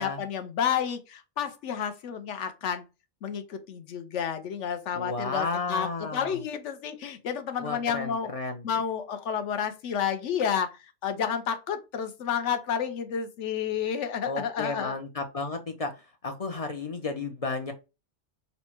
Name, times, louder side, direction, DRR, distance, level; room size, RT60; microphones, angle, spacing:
voice 1, 0.0-2.8 3.2-8.3 8.6-14.9, left 8 dB, 75° left, 8 dB, 1.0 m, -30 dB
voice 2, 4.9-6.4 7.6-8.6 14.2-17.7, left 3 dB, 40° left, 5 dB, 0.5 m, -33 dB
4.1 x 2.2 x 4.3 m, 0.27 s
omnidirectional pair, 1.3 m